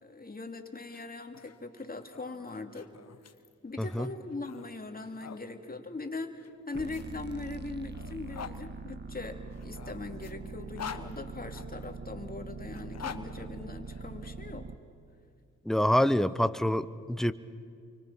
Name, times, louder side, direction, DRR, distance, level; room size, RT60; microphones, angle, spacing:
voice 1, 0.0-2.9 3.6-14.7, left 3 dB, 30° left, 5 dB, 2.6 m, -41 dB
sound 1, 0.8-5.4 6.4-8.6 9.5-11.9 12.7-14.3, left 7 dB, 55° left, 1.3 m, -46 dB
sound 2, 6.7-14.8, right 3 dB, 35° right, 1.4 m, -42 dB
voice 2, 15.6-17.3, left 1 dB, ahead, 13 dB, 0.9 m, -26 dB
29.0 x 25.0 x 5.8 m, 2.3 s
cardioid pair, 60°, 30 cm